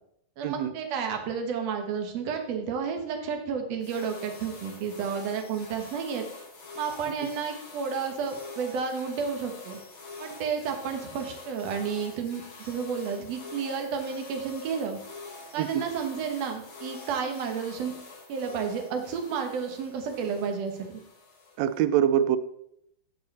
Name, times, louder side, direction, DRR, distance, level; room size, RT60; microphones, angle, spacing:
voice 1, 0.4-6.3 6.8-9.8 10.2-15.0 15.5-17.9 18.3-21.0, right 6 dB, 60° right, 4 dB, 2.1 m, -31 dB
sound 1, 3.8-21.8, left 3 dB, 55° left, 3.4 m, -46 dB
voice 2, 21.6-22.4, right 10 dB, 85° right, 13 dB, 1.6 m, -24 dB
13.5 x 4.8 x 4.2 m, 0.75 s
omnidirectional pair, 3.7 m